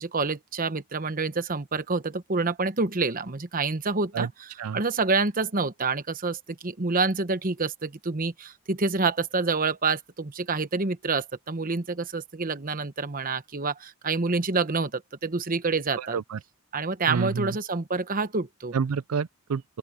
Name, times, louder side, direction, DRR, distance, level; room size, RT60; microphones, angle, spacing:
voice 1, 0.0-16.2 16.7-18.7, right 4 dB, 40° right, 1.1 m, -27 dB
voice 2, 16.0-16.4 17.1-17.5 18.7-19.8, right 6 dB, 90° right, 0.5 m, -29 dB
open air
head